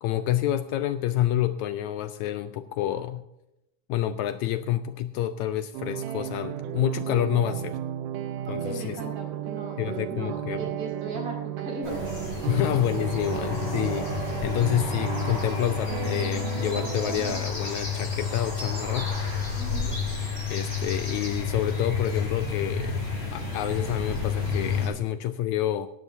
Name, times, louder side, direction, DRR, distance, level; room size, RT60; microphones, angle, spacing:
voice 1, 0.0-3.2 3.9-7.8 8.5-9.0 9.8-10.6 12.5-14.1 14.4-19.1 20.5-23.0 23.3-25.9, left 12 dB, 85° left, 10 dB, 1.6 m, -28 dB
sound 1, 5.7-17.4, right 11 dB, 80° right, 2.2 m, -34 dB
voice 2, 8.4-12.8 13.3-13.6 19.5-20.0, right 1 dB, 60° right, -1 dB, 6.7 m, -38 dB
sound 2, 11.8-24.9, left 5 dB, 30° left, 6.8 m, -30 dB
17.5 x 14.5 x 2.7 m, 0.88 s
omnidirectional pair, 3.9 m